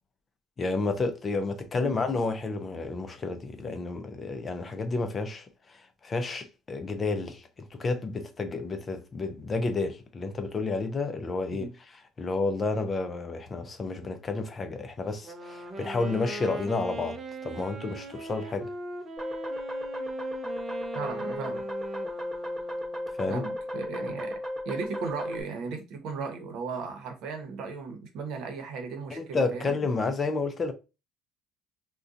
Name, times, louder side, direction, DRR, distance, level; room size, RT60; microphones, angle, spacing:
voice 1, 0.6-11.7 12.2-18.7 23.2-23.4 29.1-30.7, left 3 dB, 25° left, 0.4 m, -31 dB
Wind instrument woodwind instrument, 15.1-23.2, right 2 dB, 25° right, 0.6 m, -40 dB
sound 1, 19.2-25.4, left 1 dB, 5° right, 1.0 m, -35 dB
voice 2, 20.9-21.7 23.3-24.4 24.6-29.7, right 5 dB, 65° right, 0.8 m, -36 dB
2.6 x 2.2 x 3.6 m
cardioid pair, 130°, 0 cm